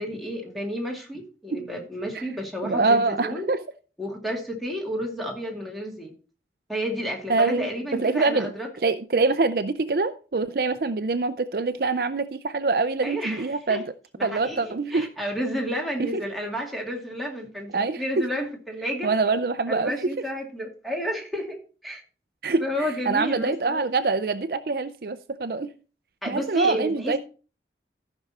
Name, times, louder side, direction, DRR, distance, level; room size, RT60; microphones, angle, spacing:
voice 1, 0.0-3.5 4.0-6.1 6.7-8.7 13.0-13.8 14.2-19.1 19.7-22.0 22.6-23.8 26.2-27.2, equal, ahead, 2.4 m, -31 dB
voice 2, 2.6-3.6 7.3-8.5 8.8-13.8 14.2-15.1 16.0-16.1 17.7-18.3 19.0-19.9 22.4-25.7 26.3-27.2, right 3 dB, 55° right, 0.5 m, -25 dB
14.0 x 6.1 x 4.2 m
head